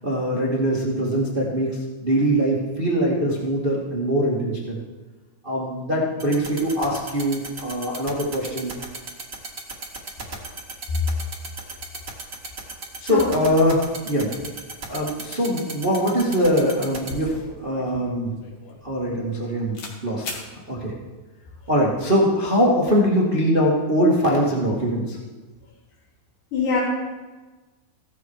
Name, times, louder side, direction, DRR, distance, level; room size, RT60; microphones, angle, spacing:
voice 1, 0.0-4.8 5.4-8.7 13.0-14.3 14.9-18.3 18.8-19.8 20.0-20.4 20.7-20.9 21.7-25.2, equal, 75° right, -4 dB, 0.4 m, -22 dB
sound 1, 6.2-17.1, right 4 dB, 45° right, 1.0 m, -34 dB
voice 2, 13.0-13.4 26.5-26.8, left 5 dB, 65° left, -8 dB, 5.3 m, -23 dB
sound 2, 17.1-19.4 19.7-20.0 20.2-20.5, left 2 dB, 50° left, 2.5 m, -38 dB
16.5 x 14.5 x 4.7 m, 1.3 s
omnidirectional pair, 5.3 m